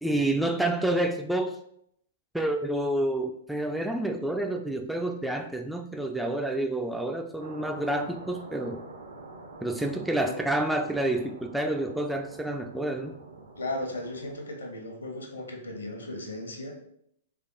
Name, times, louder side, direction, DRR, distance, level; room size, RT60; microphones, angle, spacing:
voice 1, 0.0-1.6 2.3-8.8 9.6-13.2, right 1 dB, ahead, 4 dB, 0.3 m, -29 dB
sound 1, 7.4-14.4, right 2 dB, 65° right, 0.7 m, -46 dB
voice 2, 13.6-16.8, left 1 dB, 75° left, 2 dB, 1.0 m, -36 dB
3.6 x 3.4 x 3.9 m, 0.72 s
figure-of-eight pair, 105°, 0 cm